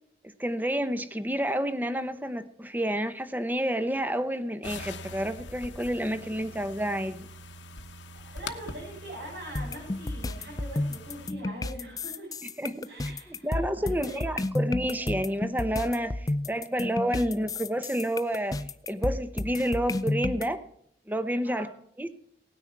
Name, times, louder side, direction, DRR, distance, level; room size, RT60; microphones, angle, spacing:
voice 1, 0.4-7.3 12.6-20.6 21.1-21.7 22.0-22.1, equal, 10° right, 11 dB, 0.8 m, -29 dB
sound 1, 4.6-11.3, left 2 dB, 90° left, 1.1 m, -43 dB
voice 2, 8.1-12.3 12.8-14.3 21.4-21.7, right 1 dB, 80° right, -6 dB, 6.4 m, -42 dB
sound 2, 9.6-20.5, left 2 dB, 20° left, 0.4 m, -31 dB
18.0 x 9.7 x 4.6 m, 0.68 s
head